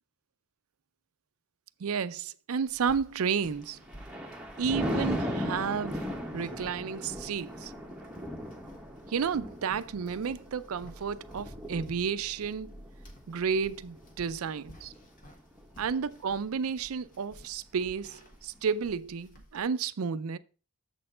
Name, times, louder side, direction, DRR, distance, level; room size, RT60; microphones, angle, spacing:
voice 1, 1.8-3.8 4.6-6.0 6.3-7.7 9.1-12.8 13.3-14.9 15.8-20.4, right 6 dB, 80° right, 0.4 m, -32 dB
sound 1, 2.7-19.6, equal, 40° left, 1.4 m, -53 dB
Thunder, 3.5-15.0 15.5-15.8, equal, 5° right, 1.0 m, -38 dB
7.5 x 4.3 x 5.5 m
head